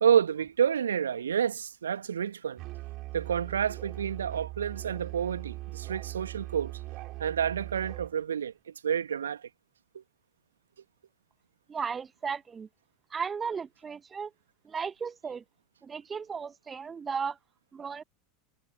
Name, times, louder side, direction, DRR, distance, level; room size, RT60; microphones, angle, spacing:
voice 1, 0.0-2.6 3.1-6.7 7.2-9.4 9.9-10.0, right 8 dB, 70° right, 1.9 m, -29 dB
Musical instrument, 2.6-8.2, right 19 dB, 45° right, 4.8 m, -40 dB
voice 2, 11.7-12.7 13.1-14.3 14.6-15.4 15.8-17.4 17.7-18.0, right 6 dB, 20° right, 1.0 m, -35 dB
figure-of-eight pair, 80°, 0 cm